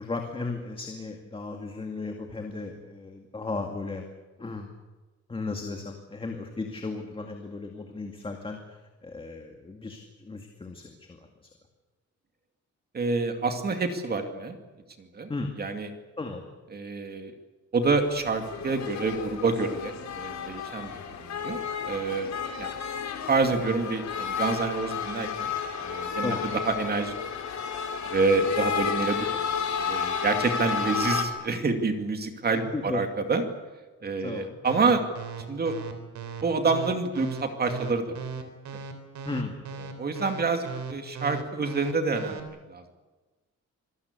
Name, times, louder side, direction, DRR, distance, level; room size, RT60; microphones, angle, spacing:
voice 1, 0.0-4.0 4.4-4.7 5.3-11.5 15.3-15.5 16.2-16.4 26.2-26.5 32.5-33.0 34.2-34.6 39.3-39.6, left 3 dB, 20° left, 3 dB, 2.2 m, -35 dB
voice 2, 12.9-14.6 15.0-15.3 15.6-15.9 16.7-17.3 17.7-22.3 22.6-22.7 23.3-25.5 25.8-26.4 26.6-27.1 28.1-29.3 29.9-33.4 34.0-35.0 35.5-35.7 36.4-38.4 38.7-38.8 40.0-42.8, right 4 dB, 35° right, 6 dB, 2.5 m, -27 dB
sound 1, 17.8-31.3, left 6 dB, 70° left, 3.8 m, -32 dB
sound 2, 34.7-42.4, right 5 dB, 75° right, 3.7 m, -37 dB
27.0 x 20.0 x 8.3 m, 1.2 s
wide cardioid pair, 165°, 29 cm